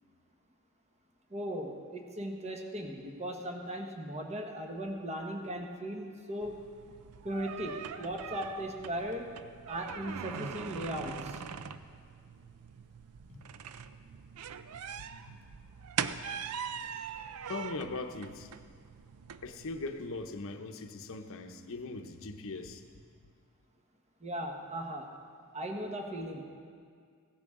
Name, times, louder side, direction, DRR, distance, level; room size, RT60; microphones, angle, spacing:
voice 1, 1.3-6.6 7.2-9.3 9.7-11.4 24.2-25.1 25.5-26.4, equal, 30° right, 2 dB, 1.3 m, -38 dB
sound 1, 6.4-20.3, right 7 dB, 80° right, 0.5 m, -42 dB
voice 2, 15.0-15.6 17.5-18.5 19.4-23.0, left 3 dB, 65° left, 7 dB, 0.8 m, -41 dB
16.0 x 12.5 x 3.7 m, 2.1 s
head